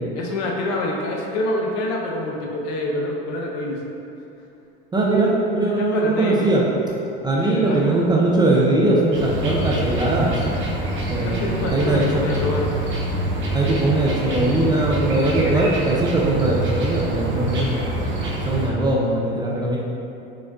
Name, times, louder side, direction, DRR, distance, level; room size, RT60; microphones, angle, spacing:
voice 1, 0.2-3.8 5.8-6.5 7.3-7.9 11.2-12.7, left 1 dB, 60° left, -1 dB, 0.7 m, -26 dB
voice 2, 4.9-6.6 7.2-10.3 11.1-12.0 13.5-17.7 18.5-19.8, right 2 dB, 15° right, -4 dB, 0.4 m, -20 dB
sound 1, 9.1-18.7, right 1 dB, 40° right, 0.8 m, -26 dB
5.1 x 2.3 x 2.3 m, 2.7 s
supercardioid pair, 100°, 30 cm